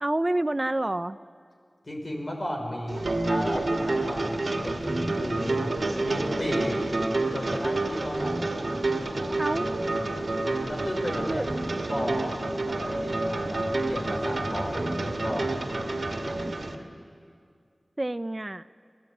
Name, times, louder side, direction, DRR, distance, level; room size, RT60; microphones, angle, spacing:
voice 1, 0.0-1.2 9.4-9.7 11.2-11.5 18.0-18.7, right 1 dB, 35° right, 14 dB, 0.5 m, -28 dB
voice 2, 1.8-5.6 6.0-6.8 7.3-8.5 10.6-11.4 11.8-12.4 12.7-15.5, equal, 55° left, 0 dB, 5.6 m, -34 dB
sound 1, 2.9-16.8, right 2 dB, 75° right, 2.0 m, -29 dB
26.5 x 17.5 x 9.8 m, 2.2 s
wide cardioid pair, 40°, 0 cm